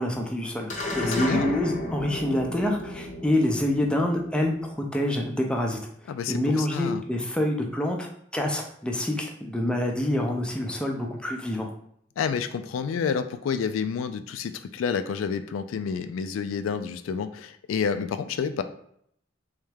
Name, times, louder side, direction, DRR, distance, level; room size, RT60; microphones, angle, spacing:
voice 1, 0.0-5.8 6.3-11.7, left 1 dB, 5° left, 1 dB, 0.5 m, -27 dB
sound 1, 0.7-5.3, left 2 dB, 40° left, 0.7 m, -34 dB
voice 2, 1.0-1.5 6.1-7.0 12.2-18.6, left 6 dB, 75° left, 10 dB, 0.3 m, -29 dB
3.4 x 3.2 x 3.3 m, 0.69 s
head